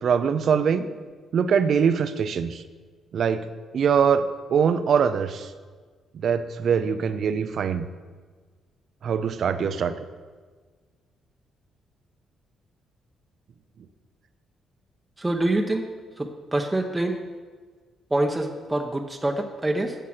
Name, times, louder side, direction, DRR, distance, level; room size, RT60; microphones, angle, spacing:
voice 1, 0.0-0.9 1.3-2.6 3.1-3.5 3.7-5.5 6.2-7.9 9.0-10.0, right 7 dB, 60° right, 12 dB, 0.6 m, -23 dB
voice 2, 15.2-15.8 16.2-17.2 18.1-19.9, right 1 dB, 15° right, 2 dB, 0.9 m, -25 dB
10.0 x 7.3 x 6.0 m, 1.5 s
cardioid pair, 90°, 0 cm